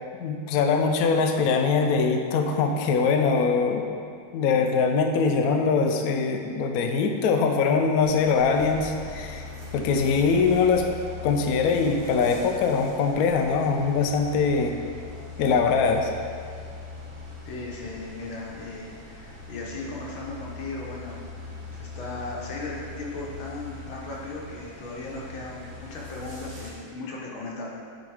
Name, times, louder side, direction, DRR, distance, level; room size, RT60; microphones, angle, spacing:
voice 1, 0.2-4.0 4.3-9.4 9.7-10.9 11.2-14.7 15.4-16.1, left 5 dB, 75° left, 4 dB, 0.8 m, -22 dB
sound 1, 8.0-26.7, left 3 dB, 50° right, 1.8 m, -41 dB
voice 2, 17.5-21.2 21.7-27.7, left 2 dB, 90° left, -3 dB, 2.0 m, -37 dB
9.3 x 3.5 x 4.8 m, 2.2 s
omnidirectional pair, 2.2 m